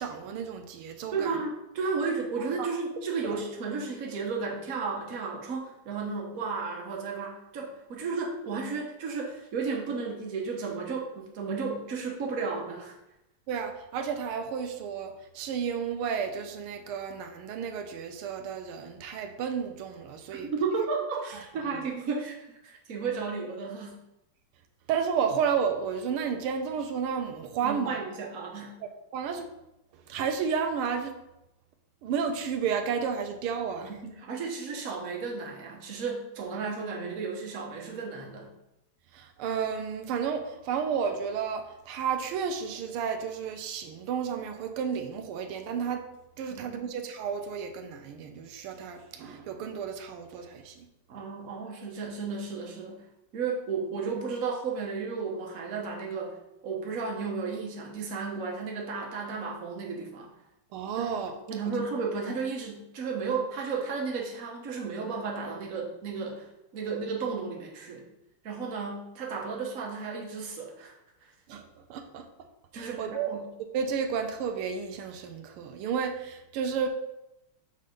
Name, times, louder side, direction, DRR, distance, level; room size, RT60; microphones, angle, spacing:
voice 1, 0.0-1.4 2.4-2.7 3.2-3.4 13.5-20.5 21.6-21.9 24.9-28.0 28.8-29.5 29.9-31.2 32.0-33.9 39.1-46.1 46.4-50.9 60.7-61.3 71.5-72.3 72.7-73.3 73.7-76.9, right 6 dB, 85° right, 6 dB, 1.6 m, -32 dB
voice 2, 1.1-12.9 20.5-24.0 27.6-28.8 34.0-38.5 46.5-46.9 51.1-53.0 53.3-56.3 56.6-60.3 61.0-66.5 66.7-68.0 68.4-70.9 71.2-71.3 72.7-73.4, right 4 dB, 45° right, -1 dB, 1.4 m, -33 dB
6.5 x 4.0 x 5.1 m, 0.90 s
omnidirectional pair, 2.3 m